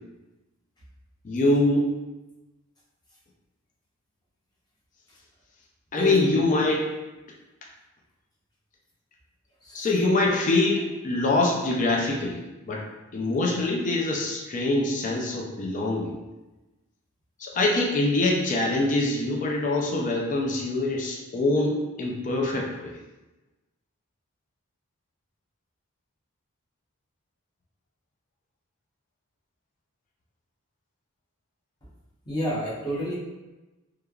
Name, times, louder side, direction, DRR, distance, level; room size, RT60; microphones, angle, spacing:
voice 1, 1.2-1.9 5.9-6.9 9.7-12.4 12.7-12.9 13.1-16.2 17.4-22.9, left 2 dB, 35° left, -1 dB, 0.4 m, -24 dB
voice 2, 5.9-6.4 9.6-9.9 10.2-10.3 32.3-33.2, right 1 dB, 20° left, -7 dB, 0.8 m, -30 dB
3.1 x 2.3 x 2.3 m, 1.1 s
head